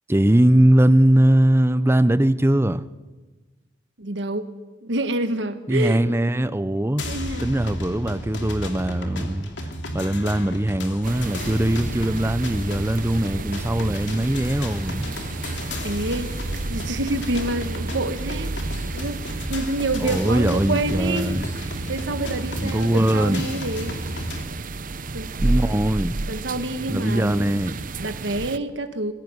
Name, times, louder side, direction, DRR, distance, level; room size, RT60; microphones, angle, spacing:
voice 1, 0.1-2.8 5.7-7.0 7.4-9.5 9.9-15.1 20.0-21.5 22.6-23.5 25.4-26.2 26.9-27.8, right 1 dB, 15° right, 0.7 m, -20 dB
voice 2, 4.0-4.5 4.8-6.0 7.0-7.5 15.8-16.3 16.7-18.5 18.9-19.2 19.5-24.0 25.1-25.3 26.3-27.6 28.0-29.1, right 2 dB, 75° right, 1.4 m, -27 dB
sound 1, 7.0-24.4, equal, 75° left, 2.9 m, -32 dB
sound 2, 11.0-28.6, right 2 dB, 50° right, 0.8 m, -32 dB
21.0 x 16.5 x 9.6 m
head